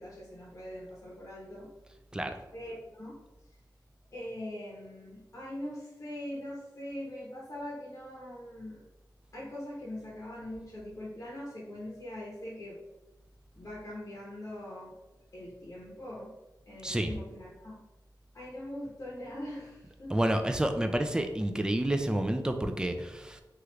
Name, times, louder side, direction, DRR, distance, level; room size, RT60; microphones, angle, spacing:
voice 1, 0.0-1.7 2.5-3.2 4.1-8.9 9.3-12.8 13.5-14.9 15.3-16.3 16.7-17.8 18.3-20.1, left 1 dB, 40° left, -5 dB, 0.8 m, -42 dB
voice 2, 20.1-23.4, right 1 dB, 10° right, 6 dB, 0.3 m, -29 dB
3.0 x 2.4 x 3.2 m, 1.0 s
wide cardioid pair, 85°, 7 cm